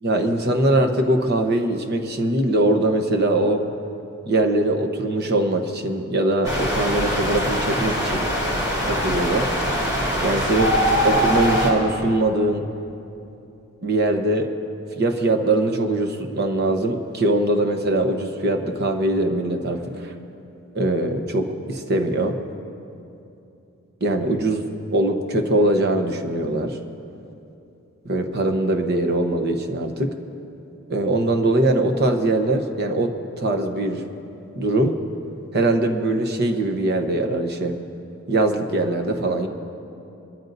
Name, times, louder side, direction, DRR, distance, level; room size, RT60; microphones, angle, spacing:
voice 1, 0.0-3.6 4.2-8.3 8.8-9.5 10.2-10.7 11.0-12.6 13.8-14.5 15.0-20.1 20.7-22.4 24.0-24.7 24.9-26.8 28.0-30.2 30.9-34.0 34.6-35.0 35.5-37.8 38.3-39.5, right 1 dB, 50° right, 5 dB, 1.0 m, -22 dB
sound 1, 6.4-11.7, equal, 20° right, 3.8 m, -22 dB
23.5 x 13.5 x 2.7 m, 2.8 s
head